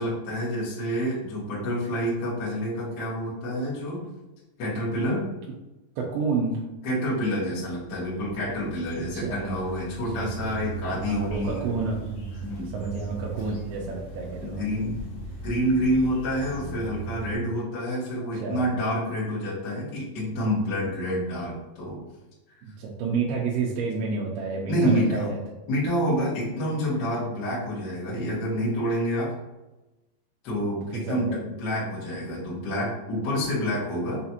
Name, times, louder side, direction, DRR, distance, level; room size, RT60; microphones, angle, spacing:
voice 1, 0.0-4.0 4.6-5.3 6.8-11.6 12.4-12.7 14.4-15.0 15.4-22.0 24.7-25.3 25.7-29.3 30.4-34.2, equal, 60° left, -8 dB, 1.1 m, -28 dB
voice 2, 6.0-6.6 9.1-9.4 10.2-10.3 10.9-14.9 18.3-18.7 22.6-25.4 30.6-31.4, right 4 dB, 85° right, -3 dB, 2.5 m, -30 dB
sound 1, 7.7-17.4, right 3 dB, 80° left, 2.8 m, -39 dB
6.2 x 2.4 x 2.8 m, 1.0 s
omnidirectional pair, 4.5 m